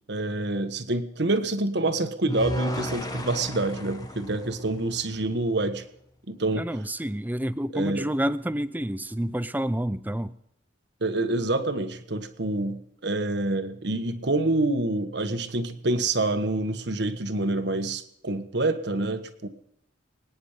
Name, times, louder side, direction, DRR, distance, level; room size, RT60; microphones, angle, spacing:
voice 1, 0.1-5.8 6.3-6.6 7.7-8.1 11.0-19.5, right 2 dB, 60° right, 8 dB, 1.5 m, -27 dB
sound 1, 2.3-5.5, equal, 20° left, 1.3 m, -34 dB
voice 2, 6.5-10.4, right 1 dB, 10° right, 14 dB, 0.6 m, -29 dB
24.5 x 9.8 x 5.1 m, 0.76 s
head